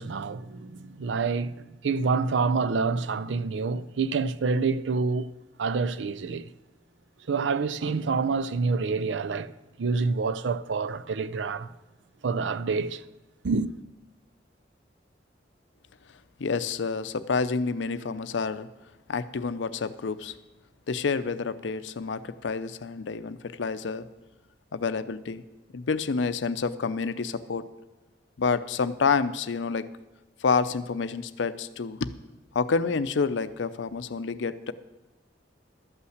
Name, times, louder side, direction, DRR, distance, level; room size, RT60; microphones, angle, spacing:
voice 1, 0.0-5.3 5.6-6.5 7.3-9.5 9.8-11.7 12.2-13.0 13.4-13.7, right 4 dB, 85° right, 0.5 m, -27 dB
voice 2, 16.4-18.7 19.1-20.4 20.9-24.1 24.7-25.4 25.7-27.7 28.4-29.9 30.4-32.1 32.5-34.7, left 5 dB, 85° left, 0.5 m, -28 dB
12.5 x 5.7 x 7.9 m
head